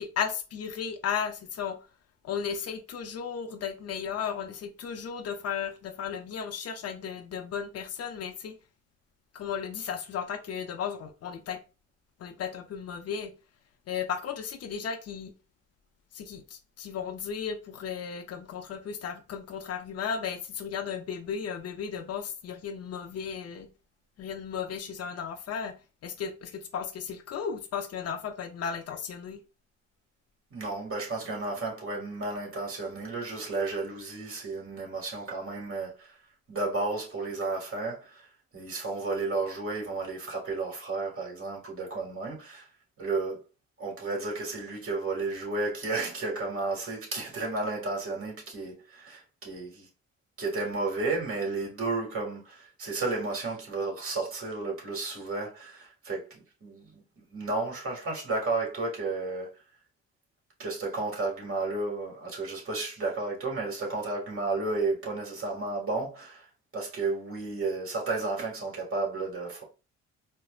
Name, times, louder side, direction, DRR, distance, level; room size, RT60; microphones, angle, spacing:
voice 1, 0.0-1.8 2.2-8.6 9.3-11.6 12.2-13.3 13.9-15.3 16.1-23.7 24.2-25.7 26.0-29.4, left 7 dB, 55° left, 0.5 m, -35 dB
voice 2, 30.5-36.1 36.5-38.3 38.5-42.7 43.0-43.4 43.8-49.9 50.4-57.0 57.3-59.5 60.6-66.5 66.7-69.6, right 3 dB, 45° right, 1.8 m, -32 dB
4.4 x 2.0 x 2.3 m
cardioid pair, 90°, 30 cm